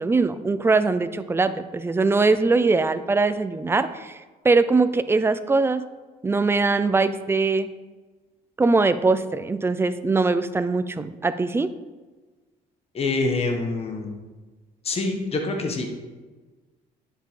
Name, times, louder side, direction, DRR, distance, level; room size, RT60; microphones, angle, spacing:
voice 1, 0.0-4.2 4.4-5.8 6.2-7.7 8.6-11.7, right 3 dB, 15° right, 12 dB, 0.5 m, -21 dB
voice 2, 12.9-14.2 14.8-15.9, left 3 dB, 35° left, 3 dB, 1.4 m, -26 dB
10.0 x 7.0 x 3.8 m, 1.3 s
cardioid pair, 110°, 17 cm